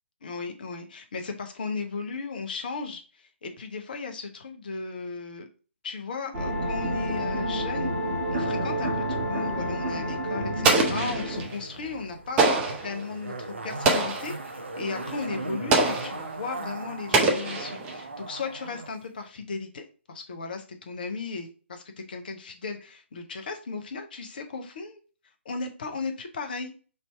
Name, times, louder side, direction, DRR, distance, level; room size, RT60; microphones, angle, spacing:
voice 1, 0.2-5.5 5.8-7.9 8.3-25.0 25.4-26.7, left 4 dB, 45° left, 5 dB, 0.8 m, -36 dB
sound 1, 6.3-11.5, equal, 35° right, 1.3 m, -29 dB
Explosion, 10.6-11.5 12.4-12.9 13.8-14.4 15.7-16.2 17.1-18.0, right 3 dB, 15° right, 0.6 m, -24 dB
Zipper (clothing), 11.3-18.9 19.2-19.3, right 3 dB, 70° right, 0.7 m, -38 dB
3.3 x 2.7 x 4.3 m, 0.37 s
figure-of-eight pair, 135°, 7 cm